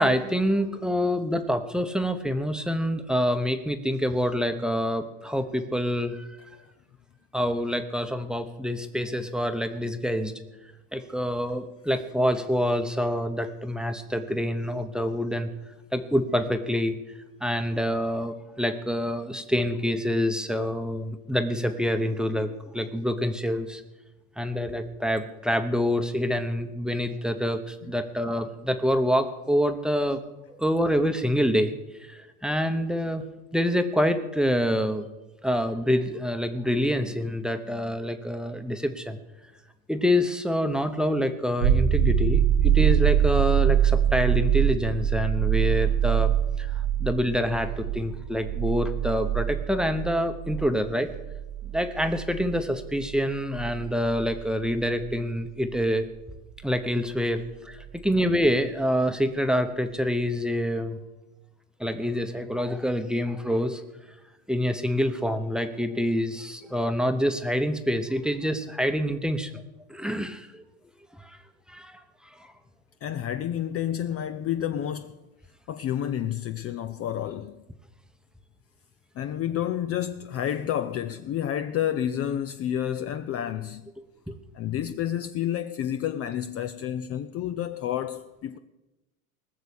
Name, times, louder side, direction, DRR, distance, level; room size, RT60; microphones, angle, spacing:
voice 1, 0.0-6.3 7.3-10.3 10.9-15.5 15.9-17.0 17.4-23.8 24.4-30.2 30.6-31.7 32.0-33.2 33.5-35.1 35.4-39.2 39.9-46.7 47.0-51.1 51.7-56.1 56.6-61.0 61.8-63.8 64.5-69.5 69.9-70.6 71.2-71.4 71.7-72.0 72.4-72.5 84.3-84.4, equal, ahead, 0.9 m, -26 dB
sound 1, 41.6-55.1 57.8-57.9, right 9 dB, 75° right, 2.3 m, -24 dB
voice 2, 73.0-75.1 75.7-77.6 79.2-83.9 84.5-88.6, left 10 dB, 35° left, 0.6 m, -30 dB
19.5 x 6.8 x 8.5 m
supercardioid pair, 125°, 43 cm